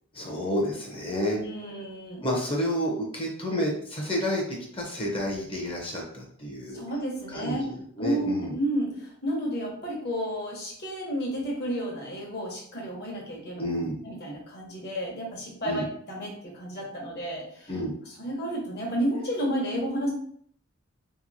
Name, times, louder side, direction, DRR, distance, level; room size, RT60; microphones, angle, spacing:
voice 1, 0.1-1.4 2.2-4.4 4.7-6.8 7.3-8.5 13.6-14.0 15.6-15.8 17.7-17.9, equal, 25° left, -2 dB, 0.6 m, -30 dB
voice 2, 1.3-2.2 6.7-7.6 8.0-13.6 14.0-17.8 18.1-20.1, equal, 55° left, -1 dB, 0.9 m, -31 dB
2.8 x 2.7 x 2.6 m, 0.63 s
head